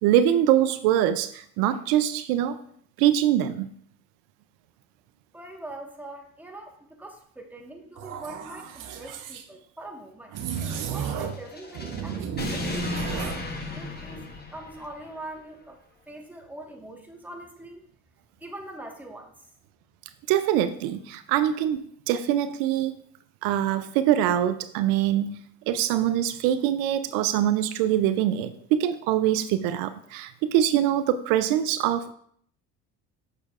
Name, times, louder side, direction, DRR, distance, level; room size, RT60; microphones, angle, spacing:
voice 1, 0.0-2.6 3.0-3.7 20.3-21.8 22.1-22.9 23.4-25.3 25.7-32.1, right 11 dB, 75° right, 12 dB, 0.5 m, -23 dB
voice 2, 5.3-10.3 10.9-13.4 13.7-14.2 14.5-15.8 16.1-17.9 18.4-19.3, right 1 dB, 5° right, 1 dB, 1.4 m, -42 dB
sound 1, 8.0-9.4 10.3-11.5 11.7-13.4, right 8 dB, 60° right, 0.9 m, -33 dB
sound 2, 10.4-15.2, left 3 dB, 25° left, 1.1 m, -35 dB
6.6 x 6.3 x 2.4 m, 0.63 s
supercardioid pair, 75°, 35 cm